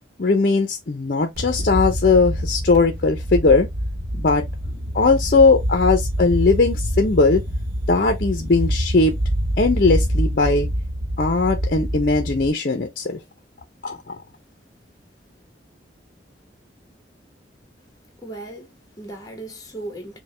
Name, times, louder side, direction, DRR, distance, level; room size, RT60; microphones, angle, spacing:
voice 1, 0.2-3.7 4.1-4.4 4.9-7.4 7.9-9.1 9.6-10.7 11.2-13.2 13.8-14.2, left 3 dB, 50° left, 0.6 m, -19 dB
sound 1, 1.4-12.5, equal, 50° right, 1.0 m, -26 dB
sound 2, 3.8-11.3, equal, 35° right, 1.2 m, -40 dB
voice 2, 18.2-20.2, right 2 dB, 20° left, 1.1 m, -36 dB
5.0 x 2.2 x 3.2 m
head